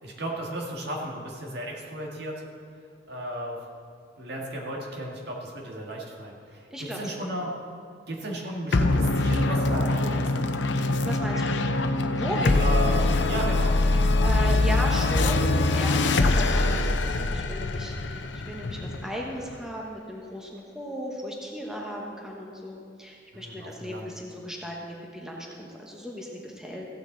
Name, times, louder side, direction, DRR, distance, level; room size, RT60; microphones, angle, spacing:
voice 1, 0.0-2.4 3.1-3.6 4.2-7.5 8.1-10.3 12.6-13.7 23.3-24.1, right 1 dB, 65° right, -2 dB, 2.0 m, -34 dB
voice 2, 6.7-7.3 11.0-11.6 12.1-12.6 13.9-26.9, equal, 5° right, -2 dB, 1.2 m, -36 dB
sound 1, 8.7-19.5, left 2 dB, 80° left, 0.7 m, -23 dB
15.5 x 9.0 x 4.0 m, 2.2 s
head